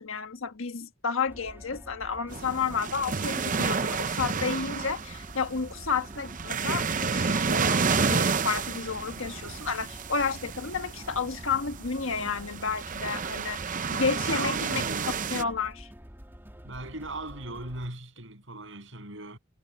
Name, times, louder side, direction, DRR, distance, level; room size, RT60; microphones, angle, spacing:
voice 1, 0.0-14.8 15.3-15.9, left 5 dB, 75° left, 1.5 m, -31 dB
sound 1, 1.3-17.9, equal, 10° right, 2.7 m, -48 dB
sound 2, 2.3-15.4, right 5 dB, 40° right, 0.7 m, -30 dB
voice 2, 13.9-15.2 16.6-19.4, right 2 dB, 65° right, 7.6 m, -39 dB
head